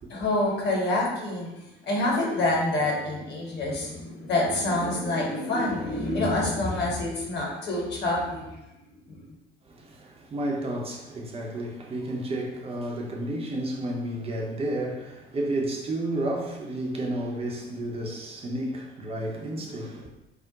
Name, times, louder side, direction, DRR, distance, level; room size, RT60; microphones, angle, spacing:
voice 1, 0.1-1.5 1.8-8.4 9.1-9.2, left 2 dB, 35° left, 1.0 m, -27 dB
voice 2, 9.7-20.1, right 1 dB, 20° right, 0.5 m, -31 dB
2.3 x 2.1 x 3.8 m
figure-of-eight pair, 65°, 31 cm